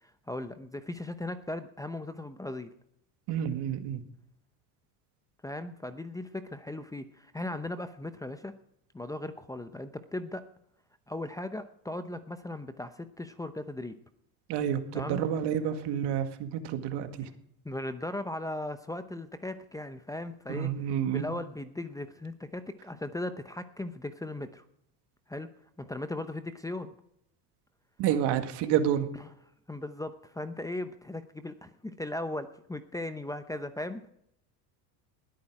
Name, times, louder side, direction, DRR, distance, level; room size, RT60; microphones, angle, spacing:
voice 1, 0.0-2.7 5.4-8.5 8.9-10.4 11.1-13.9 14.9-15.2 17.2-17.3 17.6-20.7 21.1-24.6 25.3-25.5 25.8-26.9 29.7-34.1, left 1 dB, 5° left, 10 dB, 0.7 m, -37 dB
voice 2, 3.3-4.0 14.5-17.3 20.5-21.3 28.0-29.1, right 9 dB, 60° right, 8 dB, 1.9 m, -29 dB
20.0 x 8.9 x 4.9 m, 0.73 s
supercardioid pair, 110°, 46 cm